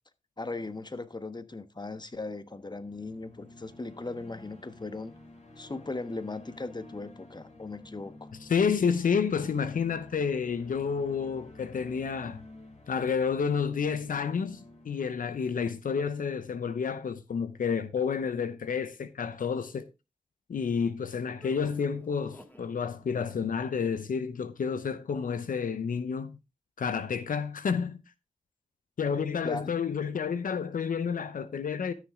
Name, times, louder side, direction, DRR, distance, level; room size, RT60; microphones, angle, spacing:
voice 1, 0.4-5.1 5.6-8.3 12.2-12.3 29.4-29.7, left 3 dB, 30° left, 1.3 m, -38 dB
sound 1, 2.4-16.6, left 2 dB, 55° left, 6.0 m, -52 dB
voice 2, 8.5-12.4 12.9-19.9 20.5-26.3 26.8-28.0 29.0-31.9, left 6 dB, 85° left, 0.8 m, -30 dB
sound 2, 21.4-22.7 23.1-23.6, equal, 15° left, 2.1 m, -52 dB
13.5 x 6.5 x 3.6 m
cardioid pair, 45°, 14 cm